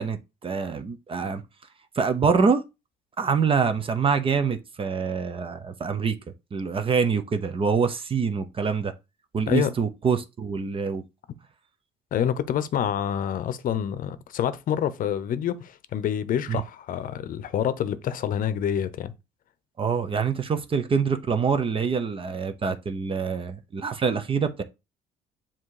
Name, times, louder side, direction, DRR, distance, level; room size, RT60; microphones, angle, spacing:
voice 1, 0.0-1.4 2.0-2.6 3.2-6.2 6.5-8.9 9.3-11.0 16.5-16.6 19.8-24.6, right 5 dB, 30° right, 0.8 m, -25 dB
voice 2, 12.1-19.1, left 9 dB, 55° left, 0.7 m, -27 dB
7.2 x 3.0 x 4.8 m
cardioid pair, 110°, 17 cm